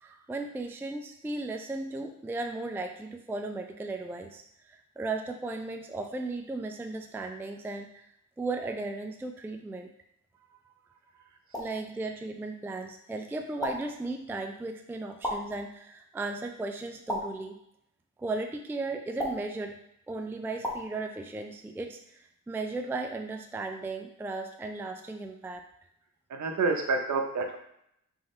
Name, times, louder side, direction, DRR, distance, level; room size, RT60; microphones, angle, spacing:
voice 1, 0.0-8.1 8.4-9.9 10.5-10.7 11.6-17.6 18.2-19.8 20.1-25.6, right 3 dB, 5° right, 5 dB, 0.4 m, -36 dB
sound 1, 11.5-11.9 13.6-14.0 15.2-15.6 17.1-17.5 19.2-19.6 20.6-20.9, left 1 dB, 10° left, 1.2 m, -34 dB
voice 2, 26.3-27.6, right 3 dB, 55° right, 3 dB, 0.9 m, -28 dB
4.0 x 3.7 x 3.2 m, 0.75 s
cardioid pair, 60°, 35 cm